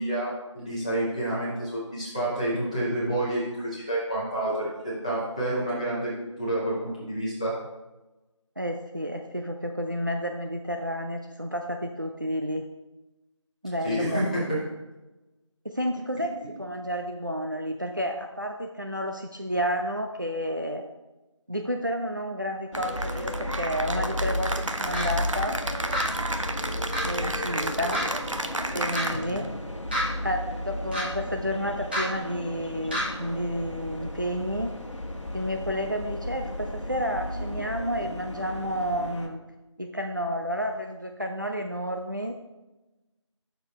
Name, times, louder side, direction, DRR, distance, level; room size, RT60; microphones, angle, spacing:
voice 1, 0.0-6.1 6.4-7.5 13.8-14.6 29.1-29.4, right 1 dB, 15° left, -9 dB, 1.3 m, -29 dB
voice 2, 8.6-12.7 13.6-14.3 15.6-16.3 16.6-20.8 21.5-25.6 27.0-28.1 28.7-29.5 30.2-34.7 35.3-39.4 39.8-42.4, equal, 40° right, 4 dB, 0.5 m, -31 dB
sound 1, 22.7-39.3, left 1 dB, 70° left, 1.2 m, -34 dB
Cheering / Applause, 22.7-29.5, right 2 dB, 80° right, 0.8 m, -32 dB
sound 2, 24.9-25.1 25.9-26.1 26.9-27.1 27.9-28.0 28.9-29.0 29.9-30.0 30.9-31.0 31.9-32.0 32.9-33.0, equal, 20° right, 1.7 m, -28 dB
6.8 x 6.6 x 3.2 m, 1.1 s
figure-of-eight pair, 175°, 16 cm